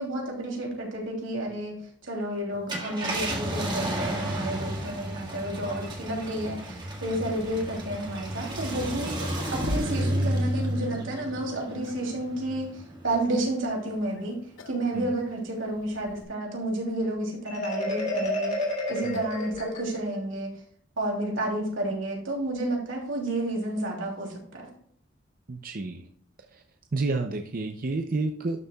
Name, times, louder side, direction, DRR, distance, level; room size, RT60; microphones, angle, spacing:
voice 1, 0.0-1.7 2.0-14.4 14.7-18.6 18.9-20.5 21.0-24.7, right 1 dB, 85° right, -1 dB, 3.0 m, -31 dB
Car, 2.5-13.4 13.9-14.0 16.0-16.2, right 1 dB, 25° right, 1.6 m, -32 dB
sound 1, 9.1-10.2 10.5-10.6 11.5-12.2 14.0-14.2 14.6-14.9 15.2-15.3 16.1-16.2 17.9-20.1, left 1 dB, 85° left, 0.7 m, -39 dB
Marimba xylophone, 17.5-20.2, left 1 dB, 35° left, 2.6 m, -31 dB
voice 2, 25.5-26.0 26.5-26.6 26.9-28.6, right 3 dB, 45° right, 4 dB, 0.6 m, -30 dB
12.0 x 6.7 x 2.3 m, 0.62 s
head